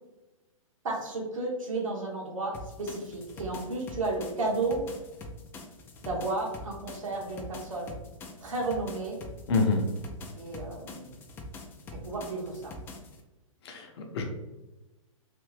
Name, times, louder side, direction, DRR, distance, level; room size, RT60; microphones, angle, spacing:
voice 1, 0.8-4.8 6.0-7.9 8.4-9.2 10.4-11.1 11.9-12.7, right 2 dB, 70° right, -2 dB, 1.3 m, -33 dB
sound 1, 2.5-13.2, left 2 dB, 10° left, 0.3 m, -45 dB
voice 2, 9.5-9.8 13.6-14.2, left 3 dB, 50° left, 3 dB, 0.8 m, -27 dB
3.3 x 2.7 x 3.2 m, 1.0 s
figure-of-eight pair, 115°, 18 cm